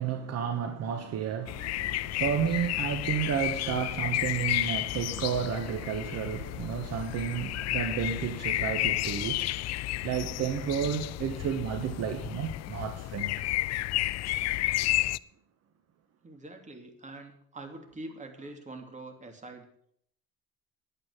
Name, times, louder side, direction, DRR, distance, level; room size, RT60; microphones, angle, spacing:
voice 1, 0.0-9.5 10.0-13.5, right 8 dB, 60° right, 1.4 m, -32 dB
sound 1, 1.5-15.2, left 17 dB, 60° left, 0.5 m, -32 dB
voice 2, 16.2-19.7, right 2 dB, 25° right, 2.9 m, -44 dB
11.0 x 9.3 x 8.4 m
cardioid pair, 105°, 29 cm